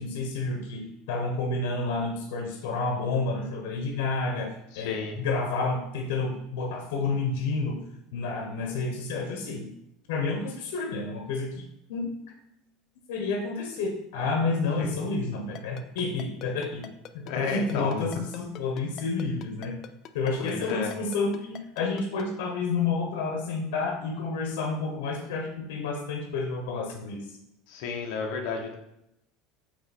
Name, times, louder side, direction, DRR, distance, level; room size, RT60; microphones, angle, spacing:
voice 1, 0.0-7.8 8.1-9.7 10.1-11.6 11.9-12.1 13.1-16.9 17.1-19.8 20.1-27.3, left 3 dB, 85° left, 2 dB, 1.1 m, -30 dB
voice 2, 4.7-5.1 14.8-14.9 17.2-18.0 20.4-20.9 27.7-28.7, left 5 dB, 55° left, 1 dB, 1.3 m, -32 dB
Ringtone, 15.6-22.2, left 10 dB, 35° left, 0.4 m, -43 dB
7.6 x 3.2 x 4.3 m, 0.81 s
cardioid pair, 165°, 0 cm